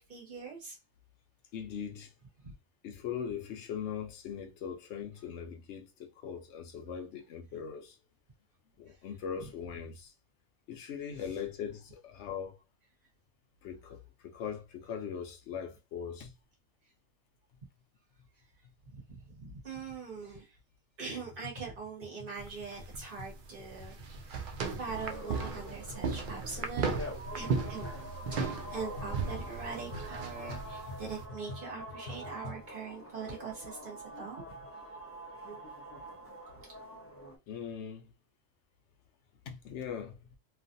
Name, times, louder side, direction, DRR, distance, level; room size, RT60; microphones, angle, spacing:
voice 1, 0.1-0.8 2.4-2.5 11.1-11.2 18.9-20.6 21.0-26.9 27.3-27.9 28.3-34.8, right 4 dB, 40° right, 1.5 m, -43 dB
voice 2, 1.5-2.1 2.8-8.0 8.8-10.1 10.7-12.6 13.6-16.3 37.5-38.1 39.5-40.2, left 7 dB, 65° left, 0.9 m, -40 dB
sound 1, 21.0-32.7, left 2 dB, 85° left, 1.2 m, -49 dB
sound 2, 22.4-31.3, right 5 dB, 70° right, 0.4 m, -37 dB
sound 3, 24.9-37.4, equal, 15° left, 0.5 m, -46 dB
3.1 x 2.5 x 2.6 m
omnidirectional pair, 1.4 m